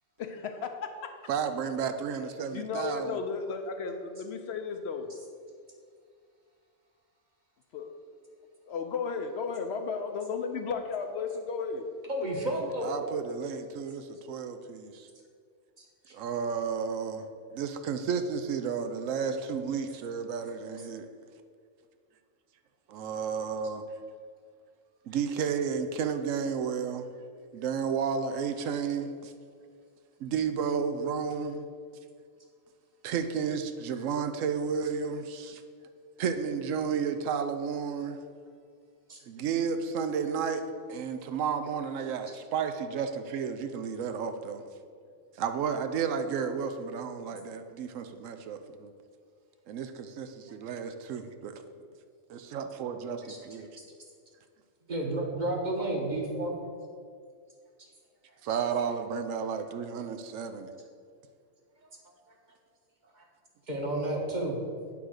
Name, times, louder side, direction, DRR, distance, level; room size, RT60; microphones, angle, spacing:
voice 1, 0.2-1.1 2.5-5.1 7.7-7.9 8.6-11.9, left 5 dB, 65° left, 5 dB, 0.8 m, -34 dB
voice 2, 1.3-3.2 12.8-15.1 16.1-17.3 17.5-21.1 22.9-23.9 25.1-27.1 27.5-29.3 30.2-31.7 33.0-35.6 36.2-38.2 39.3-44.6 45.4-48.9 49.7-51.5 52.3-53.7 58.4-60.7, right 6 dB, 85° right, 8 dB, 1.0 m, -32 dB
voice 3, 12.1-12.9 39.1-39.2 53.3-53.4 54.9-56.5 63.2-63.3 63.7-64.6, right 1 dB, 40° right, 0 dB, 1.2 m, -31 dB
8.7 x 3.9 x 6.3 m, 2.1 s
omnidirectional pair, 1.3 m